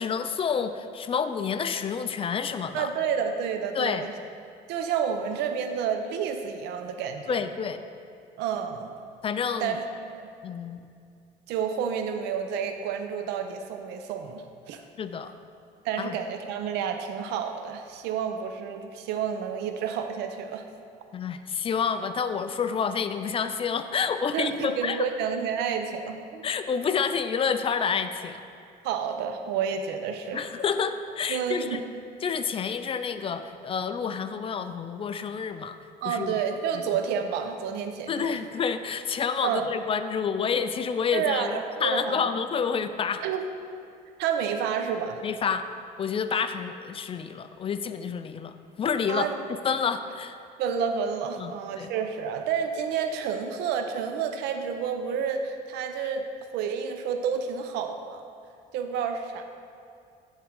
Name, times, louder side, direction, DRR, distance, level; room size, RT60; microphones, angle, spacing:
voice 1, 0.0-2.9 3.7-4.1 7.3-7.8 9.2-9.8 10.4-10.8 15.0-15.3 16.0-16.2 21.1-25.1 26.4-28.4 30.3-31.8 32.2-35.8 36.1-36.3 38.1-43.2 45.2-45.6 46.0-49.3 49.6-50.4 51.4-51.9, left 6 dB, 35° left, 10 dB, 0.4 m, -29 dB
voice 2, 2.7-4.1 4.7-7.5 8.4-8.9 9.6-10.3 11.5-14.8 15.8-20.6 24.3-26.5 28.8-30.5 31.3-31.8 36.0-38.3 39.4-39.7 41.1-42.3 43.2-43.5 44.2-45.2 49.1-49.3 50.6-56.2 56.5-58.2 58.7-59.4, right 7 dB, 90° right, 6 dB, 0.6 m, -30 dB
10.5 x 3.7 x 4.7 m, 2.5 s
cardioid pair, 110°, 17 cm